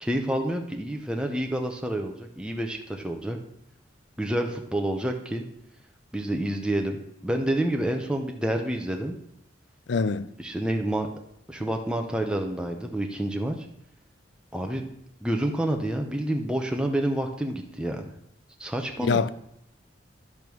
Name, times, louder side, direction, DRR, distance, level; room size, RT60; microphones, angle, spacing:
voice 1, 0.0-3.4 4.2-5.4 6.1-9.2 10.4-11.1 11.5-13.6 14.5-14.8 15.2-18.1 18.6-19.2, right 1 dB, 5° right, 0.7 m, -28 dB
voice 2, 9.9-10.3 19.0-19.3, left 4 dB, 70° left, 0.5 m, -24 dB
11.0 x 5.2 x 6.1 m
head